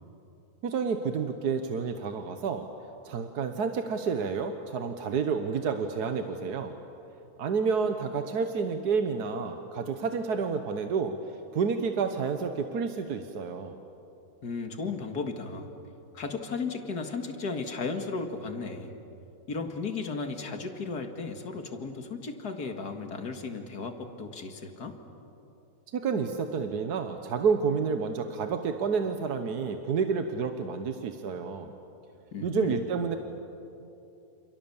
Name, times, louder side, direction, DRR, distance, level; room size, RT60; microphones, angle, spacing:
voice 1, 0.6-2.6 3.0-6.7 7.4-11.1 11.5-13.7 25.9-31.7 32.4-33.2, right 5 dB, 80° right, 6 dB, 1.7 m, -29 dB
voice 2, 14.4-15.7 16.1-18.9 19.5-25.0 32.3-32.8, left 4 dB, 85° left, 5 dB, 2.5 m, -35 dB
29.5 x 28.0 x 7.2 m, 2.8 s
omnidirectional pair, 1.7 m